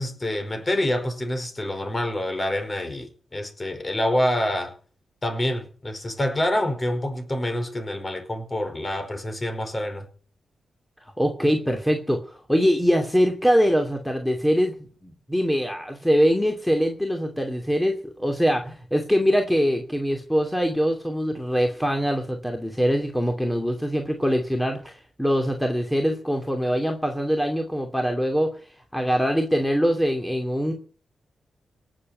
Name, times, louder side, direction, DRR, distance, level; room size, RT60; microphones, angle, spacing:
voice 1, 0.0-4.7 5.2-10.1, left 1 dB, 30° left, 5.0 m, -27 dB
voice 2, 11.0-14.7 15.0-30.7, equal, 5° left, 2.6 m, -23 dB
18.5 x 7.6 x 9.5 m
cardioid pair, 65°, 0 cm